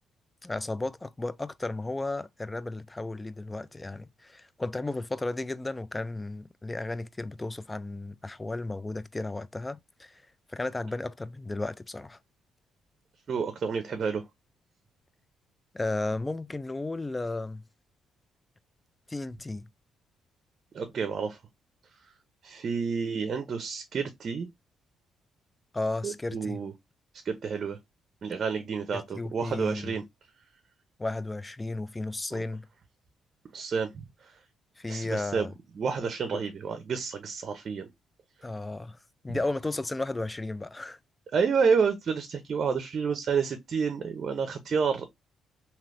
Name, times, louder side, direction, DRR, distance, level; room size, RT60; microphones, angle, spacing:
voice 1, 0.4-10.2 10.5-12.2 15.7-17.6 19.1-19.7 25.7-26.6 28.9-30.0 31.0-32.7 34.8-35.5 36.3-36.4 38.4-39.0 39.2-41.0, left 2 dB, 15° left, 0.3 m, -34 dB
voice 2, 13.3-14.2 20.7-21.4 22.4-24.5 26.0-26.7 27.2-27.8 28.2-30.0 33.5-34.1 34.9-35.5 35.8-37.9 41.3-45.0, right 5 dB, 50° right, 0.6 m, -29 dB
3.2 x 2.8 x 2.5 m
cardioid pair, 90°, 0 cm